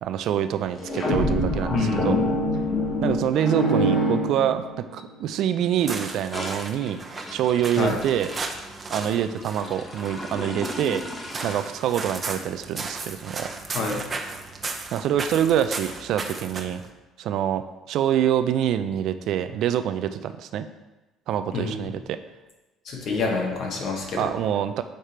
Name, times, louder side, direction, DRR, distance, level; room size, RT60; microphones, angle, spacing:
voice 1, 0.0-2.2 3.0-7.0 7.3-8.3 8.9-11.0 11.4-13.5 14.9-16.8 17.2-20.6 21.3-22.2 24.2-24.8, right 10 dB, 65° right, 10 dB, 0.3 m, -25 dB
sound 1, 0.7-5.0, equal, 40° left, 1.4 m, -25 dB
voice 2, 1.7-2.2 7.8-7.9 13.7-14.0 21.5-21.8 22.8-24.3, left 3 dB, 60° left, 0 dB, 1.3 m, -26 dB
sound 2, 5.7-16.9, right 3 dB, 30° right, 0.7 m, -36 dB
sound 3, 6.3-14.5, left 1 dB, 20° left, 0.9 m, -39 dB
6.5 x 3.3 x 4.3 m, 1.1 s
cardioid pair, 95°, 0 cm